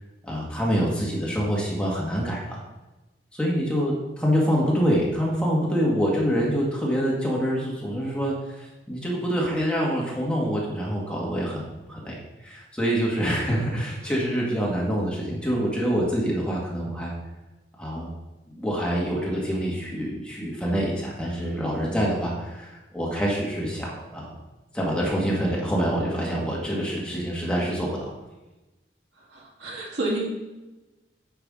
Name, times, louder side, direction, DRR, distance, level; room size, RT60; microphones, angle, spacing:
voice 1, 0.2-2.6 3.3-17.1 17.8-18.1 18.5-24.3 24.7-28.1, equal, 5° left, -4 dB, 1.7 m, -26 dB
voice 2, 29.2-30.2, right 2 dB, 80° right, -4 dB, 2.4 m, -30 dB
9.6 x 5.6 x 3.7 m, 1.1 s
head